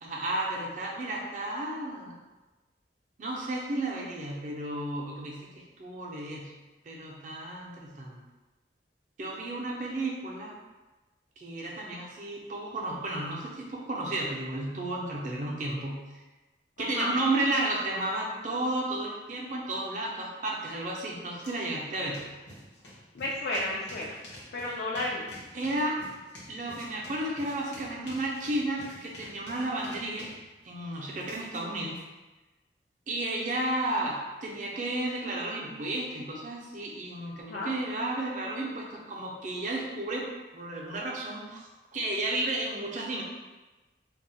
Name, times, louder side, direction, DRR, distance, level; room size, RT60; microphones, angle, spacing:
voice 1, 0.0-2.2 3.2-6.5 6.8-8.2 9.2-10.5 11.4-16.2 16.8-22.2 25.5-26.0 26.5-30.3 30.6-32.0 33.1-40.3 40.5-43.2, right 1 dB, 45° right, -2 dB, 0.5 m, -33 dB
voice 2, 16.8-17.1 23.1-24.2 24.5-25.3 37.5-37.7, left 2 dB, 65° left, -3 dB, 0.4 m, -32 dB
sound 1, 21.4-21.5 21.8-32.0, left 1 dB, 85° left, 0.8 m, -49 dB
2.3 x 2.1 x 3.8 m, 1.2 s
head